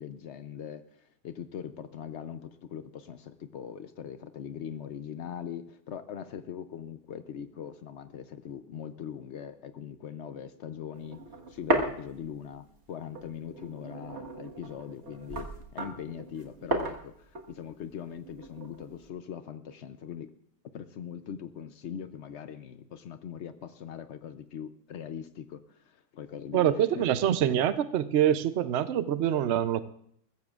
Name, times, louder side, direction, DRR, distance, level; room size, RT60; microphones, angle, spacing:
voice 1, 0.0-11.2 11.5-20.3 20.7-27.0, left 8 dB, 80° left, 11 dB, 0.6 m, -41 dB
sound 1, 10.9-12.8 13.1-19.1, right 1 dB, 40° right, 1.7 m, -35 dB
voice 2, 26.5-29.8, right 10 dB, 85° right, 12 dB, 0.6 m, -25 dB
21.0 x 15.0 x 2.4 m, 0.68 s
omnidirectional pair, 1.9 m